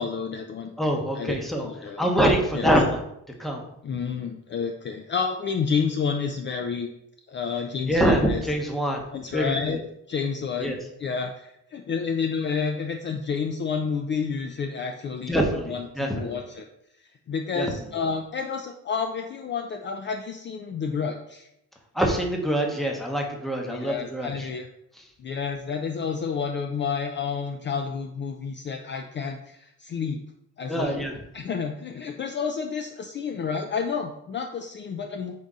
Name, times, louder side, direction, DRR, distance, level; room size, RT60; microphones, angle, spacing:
voice 1, 0.0-0.7 1.2-2.1 2.5-2.7 3.8-6.9 7.3-8.4 9.1-9.8 10.1-15.4 15.7-16.6 17.3-21.5 23.7-24.7 25.2-30.2 30.6-30.9 31.3-35.4, left 6 dB, 40° left, 4 dB, 0.4 m, -30 dB
voice 2, 0.8-1.7 2.0-3.0 3.4-3.6 7.9-9.0 9.3-9.8 10.6-10.8 15.3-16.4 17.5-17.7 21.9-24.5 30.7-31.1, equal, ahead, 1 dB, 0.8 m, -24 dB
5.3 x 2.6 x 3.5 m, 0.78 s
cardioid pair, 90°, 30 cm